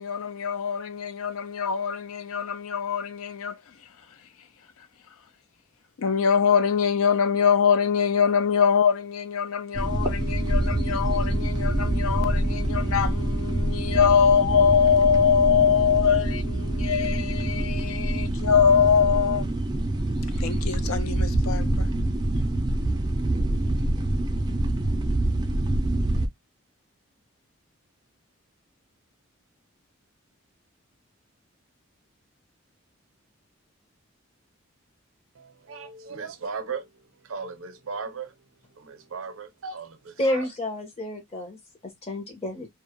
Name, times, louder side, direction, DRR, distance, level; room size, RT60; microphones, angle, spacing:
voice 1, 0.0-3.5 6.0-19.5 20.4-21.9, left 7 dB, 85° left, 0.4 m, -23 dB
sound 1, 9.7-26.3, right 1 dB, 20° right, 0.3 m, -26 dB
voice 2, 35.3-40.5, right 5 dB, 80° right, 0.6 m, -37 dB
voice 3, 40.2-42.7, left 1 dB, 30° left, 0.8 m, -30 dB
2.3 x 2.0 x 2.9 m
head